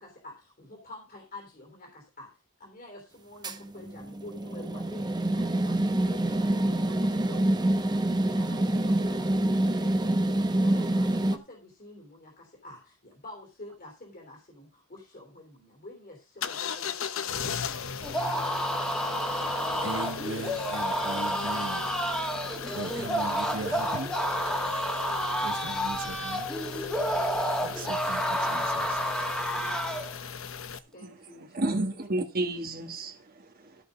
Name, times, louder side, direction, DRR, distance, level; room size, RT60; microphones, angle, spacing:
voice 1, 0.0-2.3 2.6-18.7 30.9-31.7, left 2 dB, 45° left, 3.3 m, -49 dB
sound 1, 3.4-11.4, right 1 dB, 20° right, 1.0 m, -26 dB
sound 2, 16.4-30.8, left 6 dB, 70° left, 0.9 m, -37 dB
sound 3, 18.0-30.1, equal, 5° left, 1.9 m, -30 dB
voice 2, 19.8-22.0 22.7-24.2 25.4-26.5 27.6-29.0 29.7-29.8, right 3 dB, 65° right, 1.1 m, -39 dB
voice 3, 31.5-33.8, right 2 dB, 45° right, 1.5 m, -31 dB
14.0 x 5.5 x 5.1 m
head